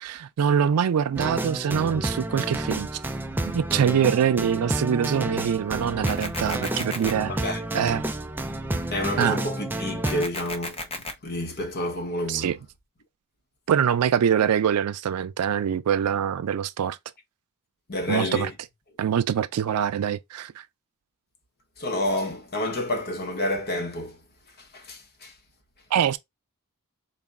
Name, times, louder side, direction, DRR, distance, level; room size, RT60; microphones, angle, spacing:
voice 1, 0.0-3.0 3.4-7.4 7.7-8.0 9.2-9.4 12.3-12.6 13.7-17.0 18.1-18.5 19.0-20.6 25.9-26.2, right 8 dB, 90° right, 0.4 m, -24 dB
sound 1, 1.1-10.3, right 1 dB, 10° right, 0.4 m, -30 dB
sound 2, 6.1-7.1 10.1-11.1, left 2 dB, 25° left, 0.7 m, -34 dB
voice 2, 7.3-7.7 8.9-10.9 11.2-12.6 17.9-18.5 21.8-24.2 24.6-25.3, left 1 dB, 45° left, 1.0 m, -29 dB
4.1 x 2.1 x 3.5 m
head